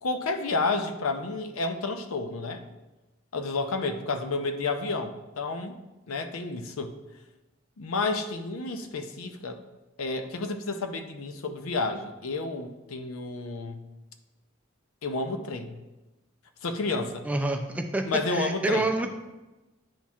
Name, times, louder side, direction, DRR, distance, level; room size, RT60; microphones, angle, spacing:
voice 1, 0.0-2.6 3.3-5.8 6.1-6.9 7.8-9.6 10.0-13.8 15.0-15.8 16.6-17.3 18.0-18.9, left 3 dB, 85° left, 7 dB, 0.6 m, -30 dB
voice 2, 17.2-19.2, right 2 dB, 5° right, 3 dB, 0.4 m, -28 dB
10.0 x 4.3 x 2.4 m, 1.1 s
head